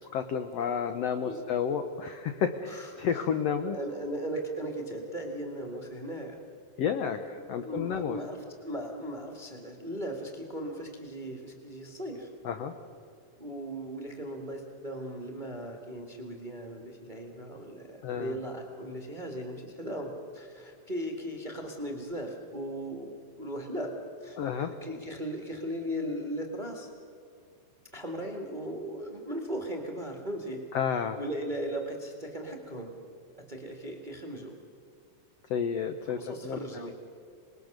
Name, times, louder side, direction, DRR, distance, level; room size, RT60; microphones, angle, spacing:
voice 1, 0.0-3.8 6.8-8.2 12.4-12.7 18.0-18.4 24.4-24.7 30.7-31.2 35.5-36.9, left 7 dB, 80° left, 8 dB, 1.4 m, -31 dB
voice 2, 2.7-3.2 3.6-6.4 7.2-12.3 13.4-23.9 24.2-26.9 27.9-30.6 31.2-33.0 33.5-34.5 36.0-36.9, right 1 dB, 20° right, 2 dB, 1.2 m, -38 dB
26.0 x 21.0 x 6.6 m, 2.4 s
omnidirectional pair, 4.0 m